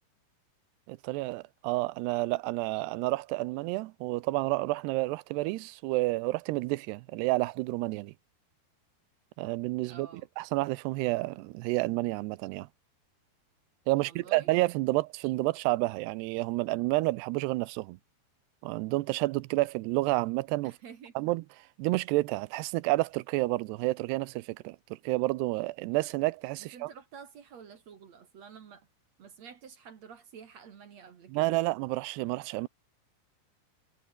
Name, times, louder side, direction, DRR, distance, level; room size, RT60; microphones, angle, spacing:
voice 1, 0.9-8.1 9.4-12.7 13.9-18.0 18.6-20.7 21.2-21.4 21.8-26.9 31.3-32.7, right 21 dB, 90° right, 2.7 m, -30 dB
voice 2, 9.9-10.3 14.0-14.5 20.6-21.1 26.6-28.9 29.2-31.6, right 7 dB, 50° right, 2.5 m, -50 dB
omnidirectional pair, 4.8 m